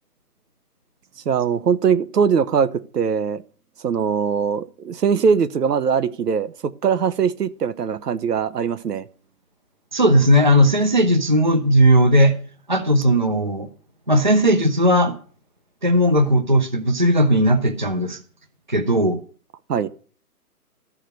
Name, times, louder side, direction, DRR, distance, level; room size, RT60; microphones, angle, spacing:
voice 1, 1.3-3.4 3.8-9.1 19.7-19.9, right 6 dB, 85° right, 1.0 m, -21 dB
voice 2, 9.9-12.4 12.7-13.7 14.1-15.1 15.8-18.2 18.7-19.2, equal, 30° right, 0.5 m, -17 dB
13.5 x 5.0 x 7.9 m
hypercardioid pair, 180°, 47 cm